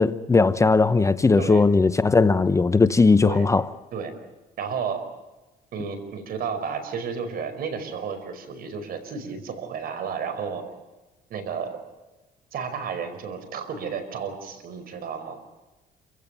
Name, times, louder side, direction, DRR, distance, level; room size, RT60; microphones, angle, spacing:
voice 1, 0.0-3.7, left 3 dB, 15° left, 0.9 m, -18 dB
voice 2, 4.6-5.0 5.7-10.6 11.3-11.8 12.5-15.4, right 6 dB, 60° right, 5.1 m, -32 dB
28.0 x 16.0 x 9.2 m
cardioid pair, 110°, 17 cm